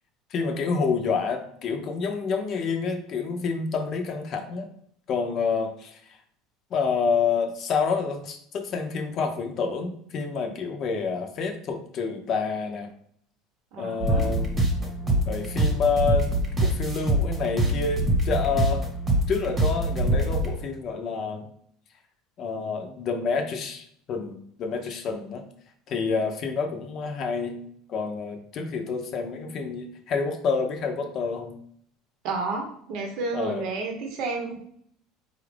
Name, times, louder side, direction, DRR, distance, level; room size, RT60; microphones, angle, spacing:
voice 1, 0.3-4.7 5.1-5.9 6.7-12.9 13.8-14.7 15.3-18.8 19.3-21.5 22.4-25.4 25.9-27.6 27.9-31.6 33.3-33.6, left 5 dB, 45° left, 4 dB, 0.6 m, -28 dB
voice 2, 13.7-14.4 32.2-34.6, right 3 dB, 65° right, 2 dB, 0.8 m, -31 dB
sound 1, 14.0-20.5, right 1 dB, 20° right, 1.0 m, -24 dB
4.1 x 2.4 x 3.3 m, 0.64 s
cardioid pair, 135°, 0 cm